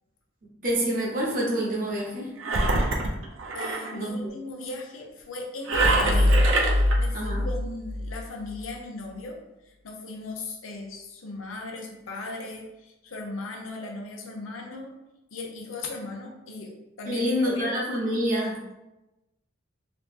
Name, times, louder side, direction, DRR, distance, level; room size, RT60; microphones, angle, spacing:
voice 1, 0.6-2.3 3.9-4.2 7.1-7.4 17.1-18.7, equal, 45° right, -4 dB, 1.0 m, -27 dB
Engine, 2.4-3.9 5.7-7.0, right 2 dB, 70° right, 0.5 m, -25 dB
voice 2, 3.5-9.4 9.6-14.9 15.3-17.7, left 2 dB, 85° left, 1 dB, 0.7 m, -38 dB
sound 1, 5.7-8.6, left 1 dB, 25° left, 0.4 m, -24 dB
3.0 x 2.7 x 3.4 m, 0.97 s
head